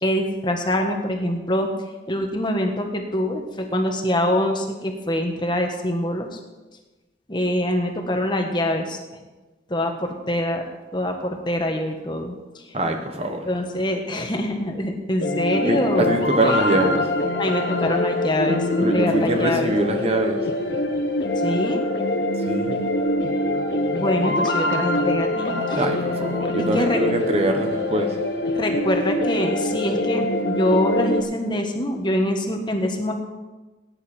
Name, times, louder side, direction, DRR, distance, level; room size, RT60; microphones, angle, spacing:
voice 1, 0.0-1.7 2.1-6.4 7.3-9.0 9.7-10.6 10.9-12.4 12.6-12.8 13.5-16.2 17.4-19.7 21.4-21.8 23.9-25.8 26.4-27.0 28.5-33.1, left 1 dB, 25° left, 1.4 m, -24 dB
voice 2, 12.7-13.5 15.5-17.3 18.8-20.6 22.4-22.8 25.7-28.3, right 1 dB, 35° right, 1.1 m, -24 dB
sound 1, 15.2-31.2, left 1 dB, 75° left, 1.5 m, -24 dB
18.0 x 9.9 x 4.4 m
head